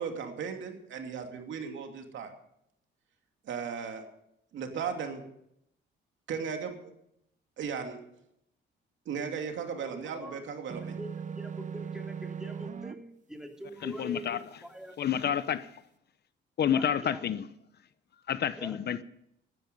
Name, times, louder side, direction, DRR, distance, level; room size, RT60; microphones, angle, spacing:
voice 1, 0.0-2.3 3.4-4.0 4.5-5.2 6.3-6.9 7.6-8.0 9.1-11.0, right 6 dB, 70° right, 2.7 m, -36 dB
voice 2, 9.8-10.4 10.8-15.0 16.7-17.2 18.6-18.8, right 1 dB, 5° right, 3.1 m, -44 dB
sound 1, 10.7-13.0, right 6 dB, 40° right, 1.0 m, -38 dB
voice 3, 13.8-14.4 15.0-15.8 16.6-17.5 18.3-19.0, left 9 dB, 55° left, 0.8 m, -29 dB
15.5 x 12.5 x 5.4 m
cardioid pair, 90°, 20 cm